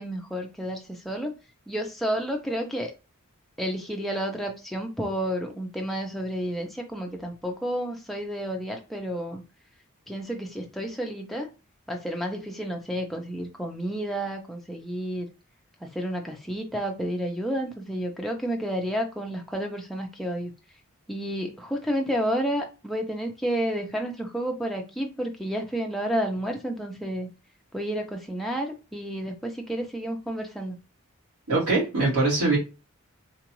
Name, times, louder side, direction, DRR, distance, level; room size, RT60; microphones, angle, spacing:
voice 1, 0.0-1.3 1.7-2.9 3.6-9.4 10.1-11.5 11.9-15.3 15.8-20.5 21.1-27.3 27.7-30.8, equal, ahead, 0.6 m, -31 dB
voice 2, 31.5-32.6, right 3 dB, 80° right, 2.1 m, -22 dB
3.9 x 2.4 x 3.0 m
head